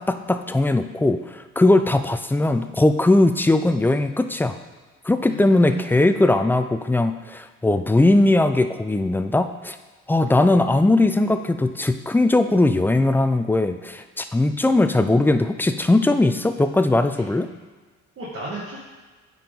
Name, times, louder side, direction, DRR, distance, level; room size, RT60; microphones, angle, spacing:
voice 1, 0.0-4.6 5.0-9.8 10.1-17.5, left 2 dB, 5° left, 9 dB, 0.4 m, -19 dB
voice 2, 5.3-6.3 18.2-18.8, right 2 dB, 45° right, -7 dB, 1.6 m, -34 dB
9.1 x 4.5 x 3.8 m, 1.3 s
cardioid pair, 90°, 30 cm